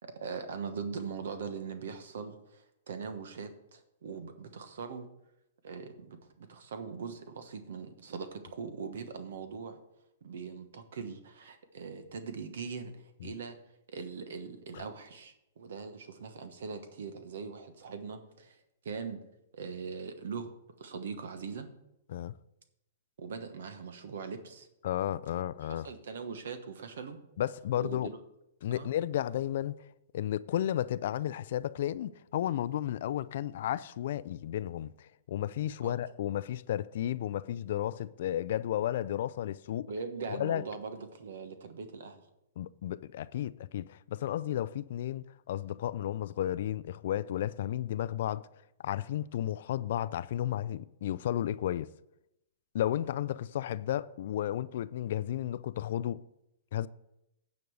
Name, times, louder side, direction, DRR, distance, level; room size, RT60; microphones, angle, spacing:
voice 1, 0.0-5.1 5.6-9.8 10.2-13.6 13.9-18.6 18.8-19.2 19.5-21.7 23.2-24.7 25.8-27.2 27.8-28.2 28.7-28.9 35.8-35.9 39.9-42.2, right 5 dB, 75° right, 1.2 m, -41 dB
voice 2, 24.8-25.9 27.4-28.1 28.6-29.8 30.1-39.9 40.3-40.6 42.6-48.5 48.8-51.9 52.7-56.2 56.7-56.9, left 11 dB, 65° left, 0.3 m, -33 dB
9.5 x 5.3 x 6.3 m
hypercardioid pair, 140°, 0 cm